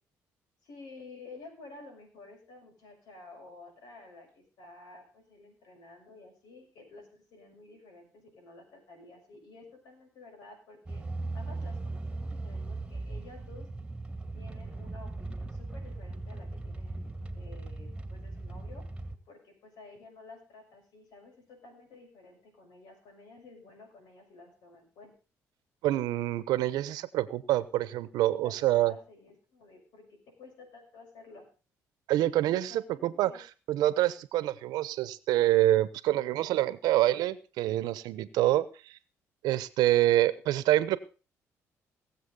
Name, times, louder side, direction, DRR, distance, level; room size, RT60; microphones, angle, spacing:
voice 1, 0.6-11.0 11.3-13.7 14.3-18.8 19.3-25.1 28.4-31.5 32.7-33.4, left 3 dB, 80° left, 4 dB, 6.0 m, -52 dB
sound 1, 10.9-19.1, right 2 dB, 15° right, 2.1 m, -38 dB
voice 2, 25.8-28.9 32.1-33.3 33.7-39.0 39.4-41.0, right 14 dB, 85° right, 17 dB, 1.0 m, -26 dB
19.5 x 7.6 x 5.4 m, 0.35 s
supercardioid pair, 75°, 7 cm